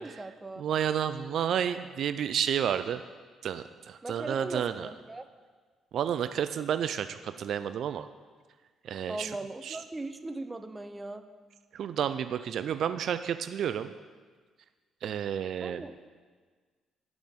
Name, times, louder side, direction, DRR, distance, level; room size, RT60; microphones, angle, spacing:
voice 1, 0.0-0.6 4.0-5.2 9.1-11.2 15.6-15.9, right 2 dB, 15° right, 9 dB, 0.6 m, -39 dB
voice 2, 0.6-3.0 3.4-4.9 5.9-8.1 8.8-9.4 9.6-9.8 11.7-13.9 15.0-15.8, right 9 dB, 65° right, 11 dB, 0.4 m, -31 dB
15.5 x 6.0 x 3.7 m, 1.5 s
cardioid pair, 100°, 0 cm